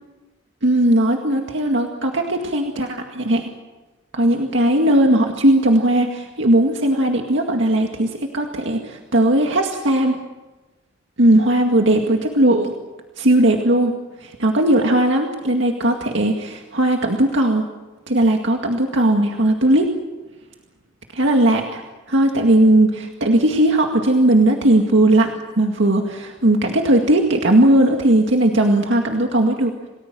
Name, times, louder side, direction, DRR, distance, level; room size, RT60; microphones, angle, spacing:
voice 1, 0.6-3.5 4.1-10.2 11.2-12.7 13.2-17.7 18.1-19.9 21.1-29.7, right 1 dB, 70° right, 2 dB, 2.1 m, -17 dB
28.5 x 19.0 x 7.7 m, 1.2 s
head